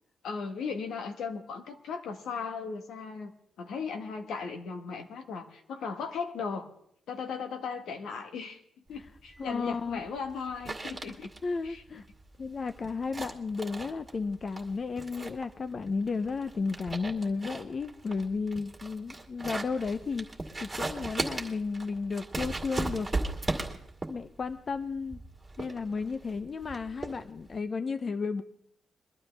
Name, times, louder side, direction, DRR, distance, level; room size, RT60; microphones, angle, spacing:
voice 1, 0.2-3.3 3.6-6.7 7.1-8.6 8.9-11.3 11.6-11.8, left 5 dB, 85° left, 5 dB, 1.6 m, -37 dB
sound 1, 8.9-27.6, right 2 dB, 20° right, 2.2 m, -38 dB
voice 2, 9.4-10.0 11.4-12.0 12.4-20.3 20.6-23.1 24.1-25.2 25.6-28.4, left 4 dB, 40° left, 10 dB, 0.6 m, -33 dB
22.5 x 12.0 x 3.4 m, 0.67 s
cardioid pair, 115°, 0 cm